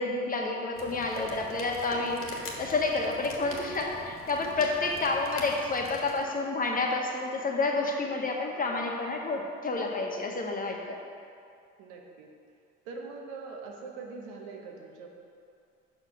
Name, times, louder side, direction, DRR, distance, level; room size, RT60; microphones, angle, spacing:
voice 1, 0.0-2.2 2.6-11.0, left 3 dB, 30° left, 1 dB, 1.1 m, -29 dB
sound 1, 0.7-6.2, left 2 dB, 50° left, 1.4 m, -44 dB
voice 2, 4.6-4.9 11.8-12.3 12.8-15.1, right 4 dB, 90° right, 1 dB, 1.0 m, -43 dB
5.6 x 5.0 x 6.0 m, 2.4 s
supercardioid pair, 90°, 29 cm